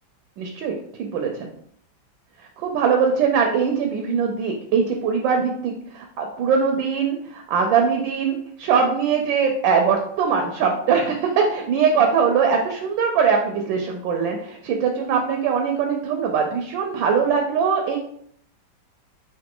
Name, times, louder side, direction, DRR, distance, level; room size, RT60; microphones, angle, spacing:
voice 1, 0.4-1.5 2.6-18.0, right 6 dB, 80° right, 3 dB, 1.3 m, -21 dB
3.8 x 2.6 x 3.6 m, 0.66 s
omnidirectional pair, 2.1 m